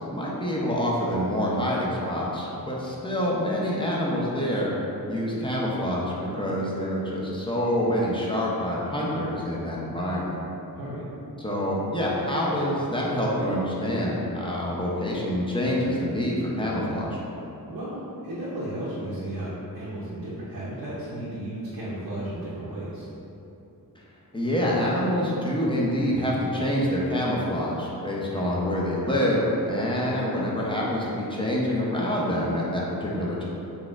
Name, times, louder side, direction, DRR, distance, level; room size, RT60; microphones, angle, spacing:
voice 1, 0.1-4.7 5.1-10.4 11.4-17.2 24.3-33.5, equal, 15° left, -5 dB, 0.6 m, -26 dB
voice 2, 17.7-23.1, right 1 dB, 85° right, -9 dB, 0.8 m, -34 dB
4.1 x 3.5 x 2.4 m, 2.9 s
wide cardioid pair, 110°, 37 cm